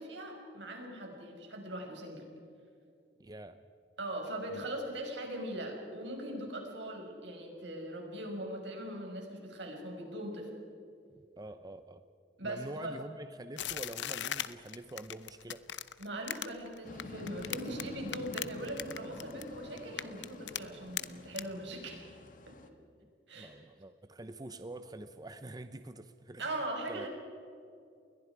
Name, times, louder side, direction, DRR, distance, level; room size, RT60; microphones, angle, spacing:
voice 1, 0.0-2.3 4.0-10.5 12.4-13.0 16.0-22.1 22.5-22.6 23.3-23.5 26.4-27.1, right 1 dB, 80° right, 1 dB, 5.7 m, -40 dB
voice 2, 3.2-3.6 4.5-4.6 11.1-12.0 12.4-15.6 17.7-17.9 23.0-23.1 23.3-26.5 26.9-27.1, right 1 dB, 20° right, 10 dB, 0.6 m, -46 dB
sound 1, 13.6-17.8 18.1-19.5 19.8-20.6 21.0-21.1 21.4-21.5, left 11 dB, 80° left, 0.8 m, -37 dB
sound 2, 16.8-22.7, left 1 dB, 45° left, 1.6 m, -49 dB
29.5 x 22.0 x 4.8 m, 2.5 s
head